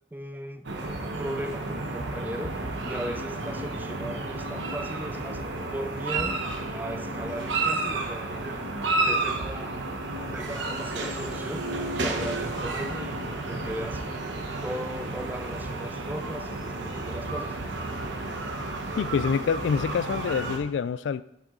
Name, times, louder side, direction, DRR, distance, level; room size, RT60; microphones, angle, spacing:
voice 1, 0.1-5.4 5.7-6.4 6.7-9.8 10.3-14.2 14.6-17.6, right 1 dB, 10° right, 8 dB, 0.4 m, -37 dB
sound 1, 0.6-20.6, right 2 dB, 85° right, 1.1 m, -31 dB
voice 2, 19.0-21.2, left 6 dB, 80° left, 16 dB, 0.3 m, -26 dB
8.1 x 7.1 x 3.8 m, 0.79 s
head